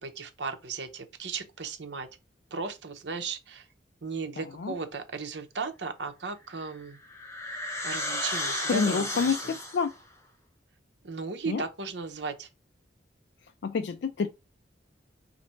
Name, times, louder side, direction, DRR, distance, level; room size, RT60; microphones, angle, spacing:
voice 1, 0.0-2.1 2.5-3.7 4.0-7.0 7.8-9.6 11.0-12.5, right 4 dB, 75° right, 0.8 m, -36 dB
voice 2, 4.4-4.7 8.7-9.9 11.5-11.6 13.6-14.3, left 5 dB, 70° left, 0.4 m, -28 dB
sound 1, 6.5-10.0, left 1 dB, 15° left, 0.8 m, -33 dB
4.2 x 2.6 x 4.3 m
head